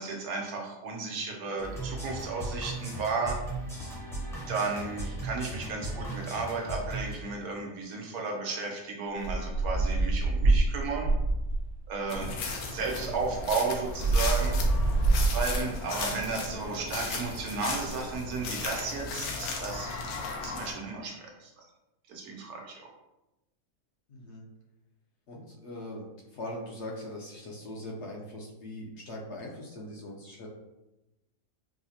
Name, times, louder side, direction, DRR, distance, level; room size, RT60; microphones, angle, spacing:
voice 1, 0.0-3.4 4.5-11.1 11.9-14.6 15.2-20.0 20.4-21.7 22.1-22.9, right 4 dB, 90° right, 0 dB, 1.2 m, -34 dB
sound 1, 1.6-7.1, right 2 dB, 5° left, 0.5 m, -37 dB
sound 2, 9.2-11.8 12.8-12.9 13.1-15.8, right 2 dB, 70° right, 1.0 m, -26 dB
sound 3, 12.1-20.7, left 3 dB, 85° left, 1.1 m, -36 dB
voice 2, 24.1-24.4 25.3-30.5, left 1 dB, 60° left, -2 dB, 0.8 m, -41 dB
4.7 x 2.1 x 2.8 m, 0.98 s
omnidirectional pair, 1.5 m